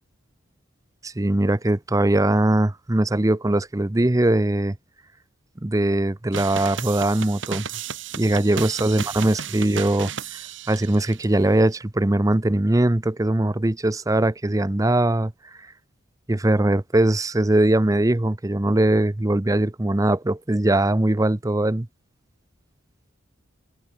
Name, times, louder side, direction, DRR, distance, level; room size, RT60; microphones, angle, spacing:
voice 1, 1.0-4.8 5.6-7.7 8.2-10.4 10.7-15.3 16.3-21.9, right 1 dB, 15° right, 0.6 m, -21 dB
sound 1, 6.3-11.3, right 7 dB, 70° right, 2.4 m, -34 dB
head